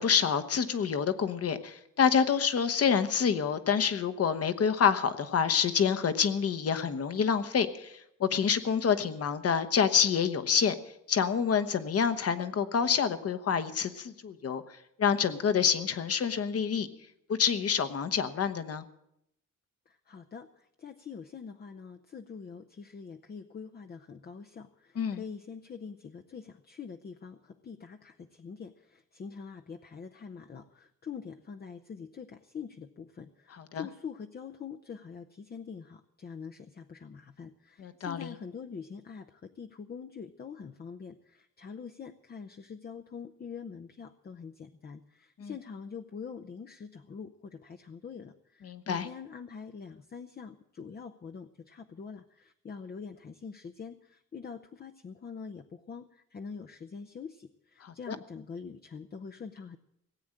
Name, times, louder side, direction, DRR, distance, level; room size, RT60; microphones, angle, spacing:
voice 1, 0.0-10.8 11.1-16.9 17.3-18.8 24.9-25.2 33.5-33.9 37.8-38.3 45.4-45.5 48.6-49.1 57.8-58.2, left 7 dB, 50° left, 11 dB, 1.0 m, -27 dB
voice 2, 19.9-59.8, left 6 dB, 30° left, 5 dB, 0.6 m, -44 dB
18.0 x 8.6 x 7.7 m, 0.78 s
wide cardioid pair, 155°, 32 cm